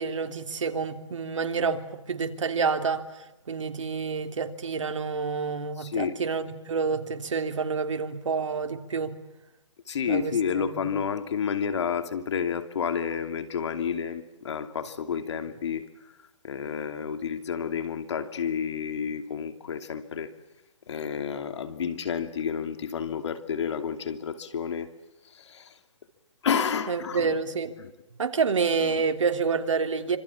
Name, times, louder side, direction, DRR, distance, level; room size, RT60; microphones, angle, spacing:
voice 1, 0.0-3.0 3.5-9.1 10.1-10.9 26.9-27.7 28.2-30.2, right 5 dB, 70° right, 3.2 m, -28 dB
voice 2, 5.8-6.2 9.9-15.8 16.4-20.3 20.9-24.9 25.3-25.7 26.4-27.3 27.8-27.9 28.8-28.9, left 7 dB, 60° left, 2.8 m, -30 dB
26.5 x 26.5 x 7.3 m
hypercardioid pair, 150°, 16 cm